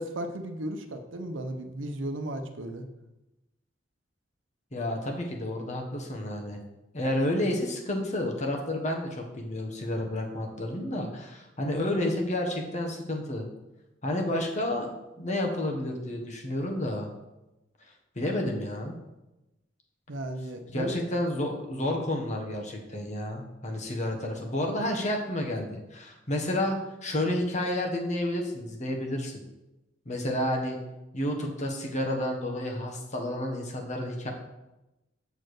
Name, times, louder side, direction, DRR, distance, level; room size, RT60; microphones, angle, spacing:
voice 1, 0.0-2.8 20.1-21.0, right 1 dB, 85° right, 6 dB, 0.9 m, -35 dB
voice 2, 4.7-6.6 6.9-13.5 14.0-14.9 15.2-17.1 18.2-19.0 20.7-29.4 30.0-30.8 31.1-34.3, left 1 dB, 40° left, 1 dB, 1.3 m, -30 dB
7.0 x 4.4 x 6.6 m, 0.98 s
head